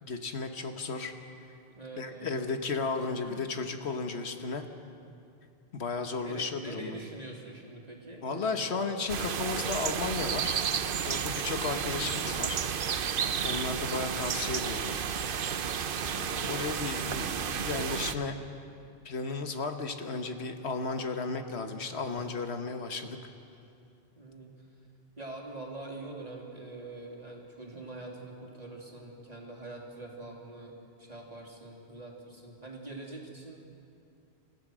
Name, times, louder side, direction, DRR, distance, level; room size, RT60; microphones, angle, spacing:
voice 1, 0.0-1.1 2.0-4.6 5.7-7.0 8.2-10.6 11.0-12.6 13.4-15.0 16.1-18.4 19.0-23.2, left 4 dB, 80° left, 6 dB, 1.5 m, -34 dB
voice 2, 1.7-2.3 3.0-3.5 6.2-9.0 24.1-24.5 25.2-33.6, right 2 dB, 35° right, -1 dB, 2.9 m, -44 dB
sound 1, 9.1-18.1, right 7 dB, 60° right, 0.9 m, -32 dB
28.5 x 15.0 x 6.2 m, 2.6 s
omnidirectional pair, 1.1 m